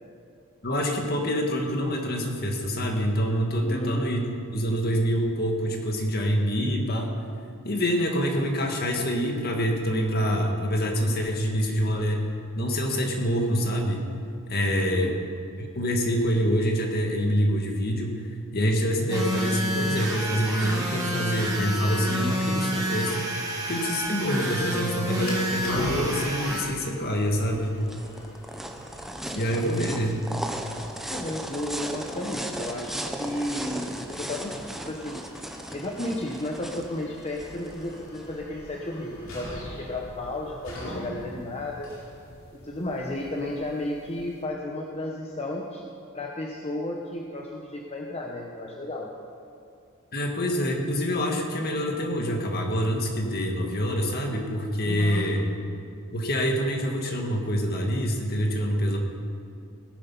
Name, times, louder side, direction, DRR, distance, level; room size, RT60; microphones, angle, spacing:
voice 1, 0.6-7.1 7.6-12.3 12.6-14.0 14.5-15.2 15.6-18.2 18.5-23.2 23.7-27.8 29.3-30.3 50.1-55.4 56.1-59.0, equal, 50° left, 2 dB, 1.8 m, -26 dB
voice 2, 3.6-4.0 14.9-15.2 29.8-30.0 31.1-35.2 35.7-41.9 42.5-45.8 46.1-49.1 54.9-55.3, left 1 dB, 30° left, -1 dB, 1.0 m, -33 dB
sound 1, 19.1-26.6, equal, 15° right, 2.2 m, -29 dB
sound 2, 24.6-44.4, left 1 dB, 80° left, 3.2 m, -42 dB
sound 3, 27.4-38.2, right 1 dB, ahead, 0.8 m, -36 dB
17.5 x 9.8 x 5.5 m, 2.4 s
head